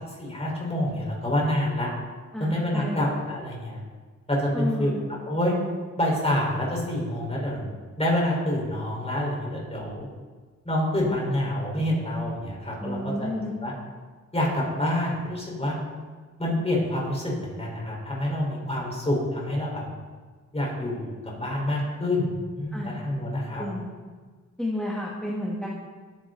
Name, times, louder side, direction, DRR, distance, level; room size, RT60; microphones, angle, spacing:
voice 1, 0.2-1.9 2.4-3.8 4.3-4.9 5.2-5.5 6.0-7.7 8.0-10.1 10.6-13.7 14.3-15.8 16.4-19.8 20.5-23.6, left 1 dB, 20° left, -3 dB, 4.7 m, -27 dB
voice 2, 2.3-3.0 4.5-5.0 12.8-13.5 22.7-23.0 23.6-23.9 24.6-25.7, left 1 dB, ahead, -4 dB, 1.8 m, -31 dB
20.5 x 9.9 x 4.0 m, 1.5 s
wide cardioid pair, 135°, 30 cm